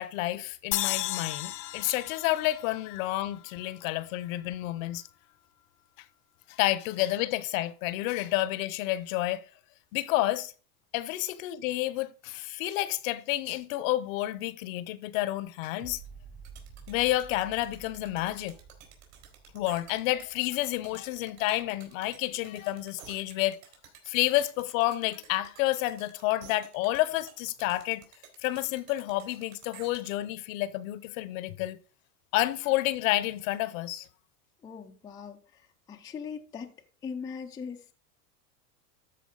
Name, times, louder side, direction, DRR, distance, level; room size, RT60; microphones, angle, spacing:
voice 1, 0.0-5.0 6.5-9.4 9.9-10.5 10.9-16.0 16.9-18.6 19.5-23.6 24.1-28.0 28.4-31.8 32.3-34.1, left 16 dB, 55° left, 0.8 m, -30 dB
sound 1, 0.7-4.0, left 15 dB, 85° left, 0.9 m, -35 dB
sound 2, 15.8-22.8 23.3-23.4, right 6 dB, 30° right, 1.0 m, -52 dB
sound 3, 16.4-30.1, right 9 dB, 60° right, 3.7 m, -52 dB
voice 2, 34.6-35.6 35.9-36.7 37.0-37.9, left 6 dB, 10° left, 0.4 m, -40 dB
13.0 x 4.5 x 3.8 m
supercardioid pair, 135°, 47 cm